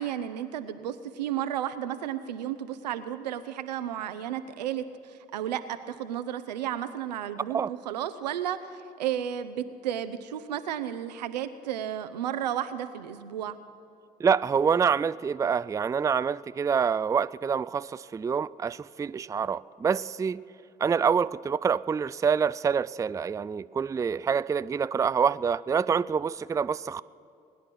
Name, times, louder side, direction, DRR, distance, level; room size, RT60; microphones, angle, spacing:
voice 1, 0.0-13.6, right 10 dB, 85° right, 0.6 m, -33 dB
voice 2, 14.2-20.4 20.8-27.0, right 6 dB, 15° right, 0.3 m, -26 dB
20.5 x 10.5 x 6.1 m
hypercardioid pair, 45°, 21 cm